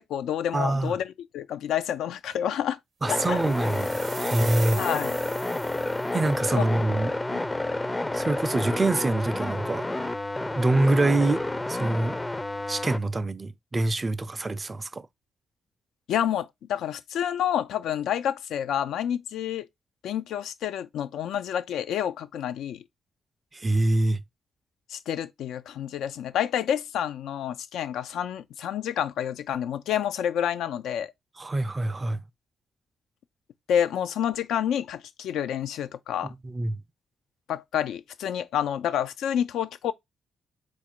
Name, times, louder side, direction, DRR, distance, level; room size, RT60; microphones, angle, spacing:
voice 1, 0.0-2.8 3.3-3.4 4.8-5.2 6.5-6.6 7.3-7.4 16.1-19.7 20.0-22.8 24.9-31.1 33.7-36.3 37.5-39.9, left 9 dB, 70° left, 0.4 m, -29 dB
voice 2, 0.5-0.9 3.0-4.8 6.1-7.1 8.1-9.9 10.5-11.4 11.7-12.1 12.7-15.0 23.5-24.2 31.4-32.2 36.4-36.8, right 2 dB, 35° right, 0.5 m, -25 dB
sound 1, 3.1-13.0, left 2 dB, 20° left, 0.5 m, -30 dB
sound 2, 3.3-6.3, right 5 dB, 55° right, 0.8 m, -40 dB
4.2 x 2.5 x 4.3 m
hypercardioid pair, 40°, 0 cm